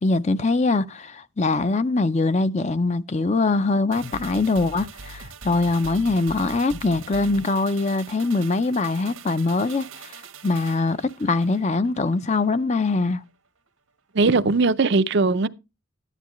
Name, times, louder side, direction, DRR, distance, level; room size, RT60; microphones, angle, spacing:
voice 1, 0.0-10.2 10.4-13.2, left 3 dB, 30° left, 0.6 m, -23 dB
sound 1, 3.9-12.5 12.8-12.9, right 4 dB, 80° right, 1.2 m, -42 dB
voice 2, 14.1-15.5, right 3 dB, 55° right, 0.6 m, -19 dB
13.0 x 11.0 x 3.1 m
head